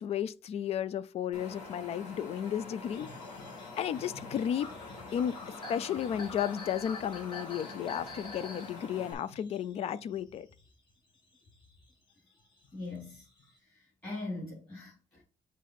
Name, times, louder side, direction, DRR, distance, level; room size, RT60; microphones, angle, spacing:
voice 1, 0.0-3.1 3.8-4.7 5.1-5.4 5.7-10.5, left 9 dB, 55° left, 0.4 m, -33 dB
Wind, 1.3-9.1, left 3 dB, 70° left, 2.1 m, -46 dB
sound 1, 2.9-10.9 11.3-13.6, left 3 dB, 40° left, 1.3 m, -48 dB
voice 2, 12.7-13.3 13.7-15.2, left 2 dB, 25° left, 4.0 m, -41 dB
7.4 x 4.2 x 4.0 m
cardioid pair, 155°, 13 cm